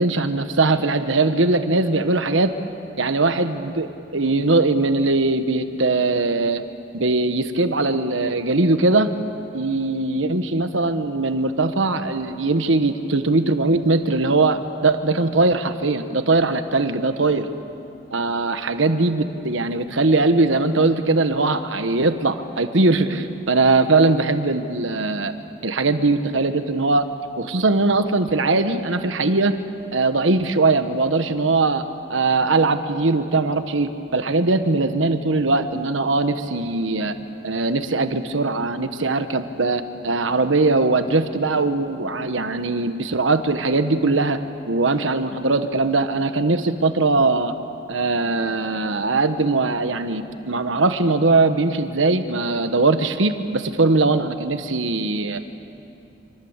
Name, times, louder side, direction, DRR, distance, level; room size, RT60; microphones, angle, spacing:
voice 1, 0.0-2.5 3.0-6.6 6.9-9.1 9.5-17.5 18.1-25.3 25.6-27.1 27.4-29.6 29.9-37.1 37.4-44.4 44.7-47.5 47.9-55.4, right 3 dB, 80° right, 9 dB, 1.3 m, -20 dB
25.5 x 25.5 x 8.2 m, 2.7 s
head